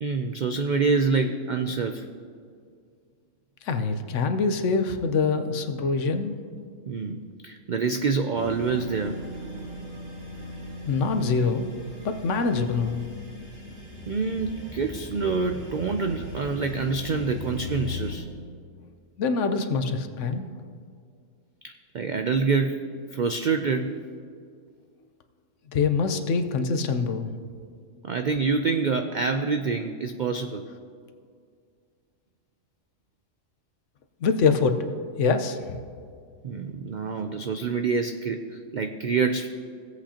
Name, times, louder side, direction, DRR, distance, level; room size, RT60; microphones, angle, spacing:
voice 1, 0.0-2.1 6.9-9.2 14.1-18.3 21.6-22.8 23.1-23.9 28.0-30.6 36.4-39.5, right 4 dB, 80° right, 6 dB, 0.4 m, -26 dB
voice 2, 3.6-6.4 10.8-11.7 12.0-13.1 19.2-20.5 25.7-27.4 34.2-34.8 35.2-35.8, left 4 dB, 65° left, 8 dB, 1.0 m, -24 dB
sound 1, 8.3-18.1, left 1 dB, 45° right, 2.0 m, -39 dB
17.0 x 8.1 x 2.9 m, 2.2 s
omnidirectional pair, 1.4 m